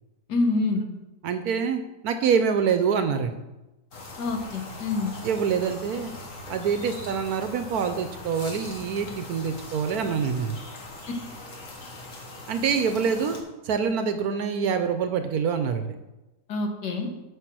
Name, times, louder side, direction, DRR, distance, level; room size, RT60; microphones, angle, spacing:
voice 1, 0.3-0.8 4.2-5.1 16.5-17.1, left 3 dB, 70° left, 4 dB, 1.8 m, -26 dB
voice 2, 1.2-3.4 5.2-6.1 6.5-10.6 12.5-13.4 13.6-15.8, right 6 dB, 70° right, 8 dB, 1.0 m, -25 dB
sound 1, 3.9-13.4, left 1 dB, 50° left, 1.8 m, -41 dB
8.1 x 5.9 x 6.1 m, 1.0 s
omnidirectional pair, 1.9 m